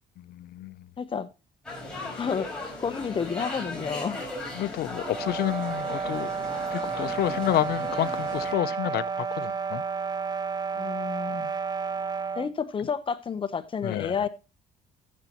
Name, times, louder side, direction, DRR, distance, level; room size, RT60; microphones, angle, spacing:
voice 1, 0.2-0.9 4.6-6.4 6.7-9.8 13.8-14.2, left 14 dB, 70° left, 0.6 m, -29 dB
voice 2, 1.0-1.3 2.1-4.2 10.7-11.5 12.3-14.3, left 6 dB, 30° left, 0.9 m, -31 dB
sound 1, 1.6-8.5, left 2 dB, 5° left, 5.2 m, -37 dB
sound 2, 5.0-12.5, right 5 dB, 25° right, 0.5 m, -31 dB
15.0 x 7.3 x 2.9 m
cardioid pair, 110°, 17 cm